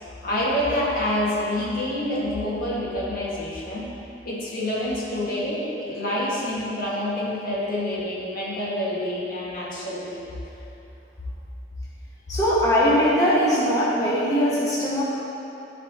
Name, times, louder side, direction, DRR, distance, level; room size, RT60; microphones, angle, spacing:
voice 1, 0.2-3.9 4.2-10.2, left 1 dB, 55° left, -7 dB, 1.7 m, -27 dB
voice 2, 12.3-15.0, equal, 20° left, -9 dB, 1.5 m, -20 dB
14.5 x 5.2 x 2.9 m, 2.9 s
head